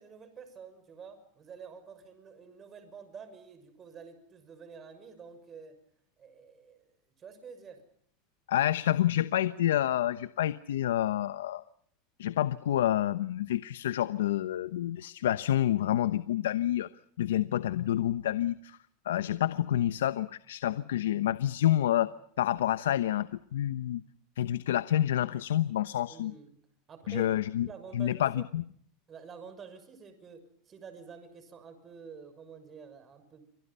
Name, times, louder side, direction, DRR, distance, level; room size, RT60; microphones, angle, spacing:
voice 1, 0.0-5.8 6.2-7.8 26.1-26.6 26.9-27.3 27.7-28.4 29.1-33.5, right 6 dB, 30° right, 10 dB, 6.2 m, -49 dB
voice 2, 8.5-11.6 12.2-16.9 17.2-18.8 19.1-22.1 22.4-24.0 24.4-26.3 27.1-27.7 27.9-28.6, left 12 dB, 90° left, 13 dB, 0.9 m, -28 dB
29.0 x 26.0 x 5.6 m, 0.64 s
supercardioid pair, 120°, 0 cm